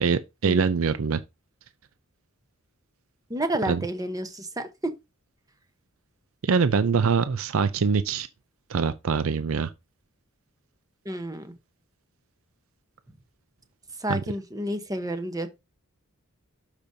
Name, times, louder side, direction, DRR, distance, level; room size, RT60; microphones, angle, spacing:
voice 1, 0.0-1.2 3.7-3.8 6.4-8.3 8.7-9.7 14.1-14.2, right 5 dB, 65° right, 0.5 m, -23 dB
voice 2, 3.3-4.7 11.0-11.5 14.0-15.5, right 1 dB, 15° right, 1.0 m, -30 dB
12.0 x 5.1 x 2.7 m
head